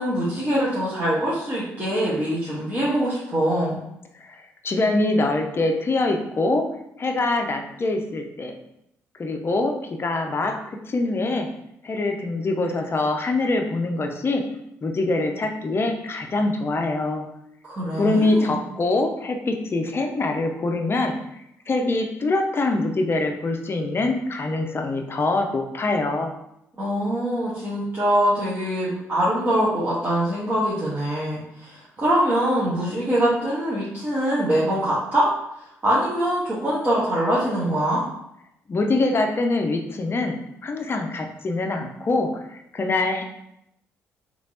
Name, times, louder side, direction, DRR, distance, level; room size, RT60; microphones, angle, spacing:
voice 1, 0.0-3.8 17.6-18.6 26.8-35.3 35.8-38.0, right 1 dB, 30° right, -10 dB, 1.2 m, -23 dB
voice 2, 4.3-6.6 7.0-8.5 9.2-9.7 10.0-11.5 11.8-14.4 14.8-17.3 18.0-21.2 21.7-26.3 38.7-40.4 40.6-43.2, left 2 dB, 35° left, 4 dB, 0.5 m, -24 dB
3.2 x 3.0 x 2.7 m, 0.80 s
hypercardioid pair, 45°, 7 cm